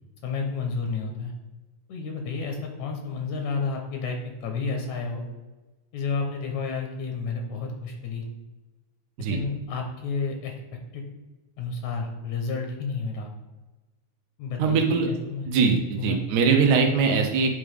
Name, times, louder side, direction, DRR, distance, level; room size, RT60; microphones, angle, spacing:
voice 1, 0.2-1.3 1.9-5.2 5.9-8.2 9.2-10.5 10.9-11.0 11.6-13.3 14.4-15.5 16.0-16.2, left 4 dB, 80° left, 2 dB, 2.3 m, -31 dB
voice 2, 14.6-15.1 15.5-17.5, right 5 dB, 80° right, 3 dB, 2.0 m, -21 dB
8.6 x 3.5 x 3.4 m, 1.2 s
omnidirectional pair, 3.3 m